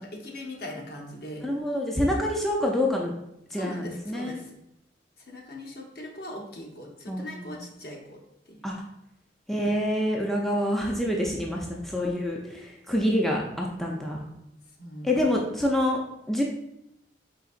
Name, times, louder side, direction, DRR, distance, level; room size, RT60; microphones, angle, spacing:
voice 1, 0.0-1.4 3.5-4.5 5.3-8.2 8.5-8.7 14.8-15.1, left 1 dB, 55° left, 1 dB, 0.8 m, -40 dB
voice 2, 1.4-3.1 3.5-4.4 7.1-7.7 8.6-8.8 9.5-14.3 15.0-16.0 16.3-16.4, left 1 dB, ahead, -2 dB, 0.3 m, -27 dB
4.4 x 3.9 x 2.4 m, 0.82 s
head